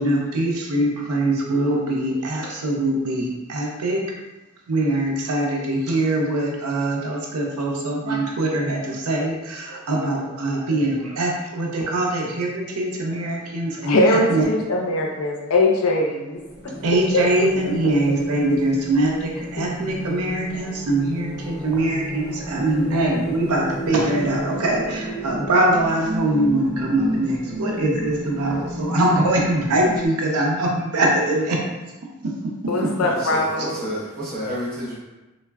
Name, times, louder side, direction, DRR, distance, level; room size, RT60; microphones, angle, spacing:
voice 1, 0.0-4.0 4.7-14.0 14.3-14.5 16.8-31.6 32.2-32.5, right 1 dB, 80° right, -1 dB, 0.5 m, -22 dB
voice 2, 13.8-17.5 19.6-19.7 32.7-33.9, left 2 dB, 70° left, 1 dB, 0.5 m, -22 dB
sound 1, 16.4-30.1, right 1 dB, 5° right, 0.5 m, -31 dB
voice 3, 32.9-35.0, equal, 45° right, -7 dB, 1.0 m, -30 dB
3.2 x 2.0 x 2.3 m, 1.1 s
head